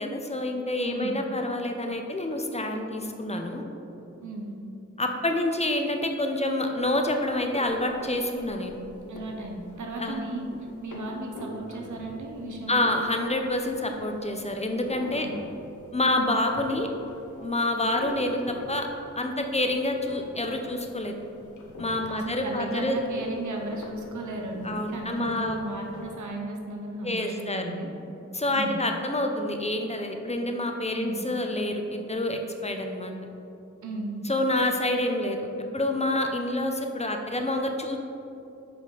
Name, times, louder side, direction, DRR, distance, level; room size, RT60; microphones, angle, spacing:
voice 1, 0.0-3.6 5.0-8.8 10.0-10.2 12.7-15.3 15.9-16.9 17.4-18.9 19.2-21.1 21.8-23.0 24.6-25.6 27.0-27.6 28.3-33.1 34.2-35.4 35.7-38.0, left 1 dB, 20° left, 3 dB, 0.7 m, -27 dB
voice 2, 0.8-1.2 4.2-4.6 9.1-10.5 10.8-12.9 15.2-15.3 22.1-27.9 28.5-28.8 30.9-31.2 33.8-34.2, right 2 dB, 80° right, 1 dB, 0.9 m, -35 dB
sound 1, 6.7-26.2, left 1 dB, 85° left, 0.8 m, -46 dB
5.4 x 4.4 x 4.9 m, 2.7 s
cardioid pair, 50°, 29 cm